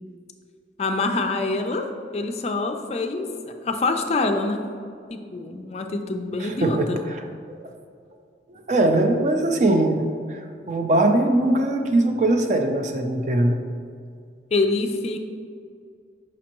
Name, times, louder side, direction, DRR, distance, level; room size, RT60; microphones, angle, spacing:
voice 1, 0.8-1.9 2.1-3.3 3.6-4.6 5.1-7.0 14.5-15.2, left 3 dB, 35° left, 5 dB, 0.3 m, -25 dB
voice 2, 6.4-7.7 8.5-13.6, right 1 dB, 40° right, 4 dB, 0.4 m, -21 dB
6.2 x 5.2 x 2.9 m, 2.3 s
head